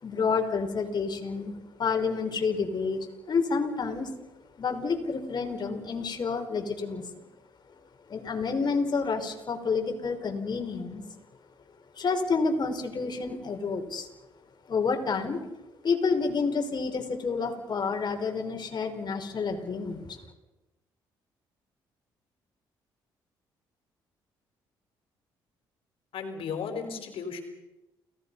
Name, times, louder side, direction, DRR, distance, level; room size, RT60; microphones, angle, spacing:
voice 1, 0.0-4.1 4.6-7.3 8.1-11.0 12.0-14.1 14.7-15.4 15.8-20.1, left 4 dB, 50° left, 5 dB, 5.0 m, -29 dB
voice 2, 26.1-27.4, left 5 dB, 70° left, 6 dB, 4.5 m, -35 dB
30.0 x 18.5 x 5.6 m, 1.0 s
supercardioid pair, 60°, 10 cm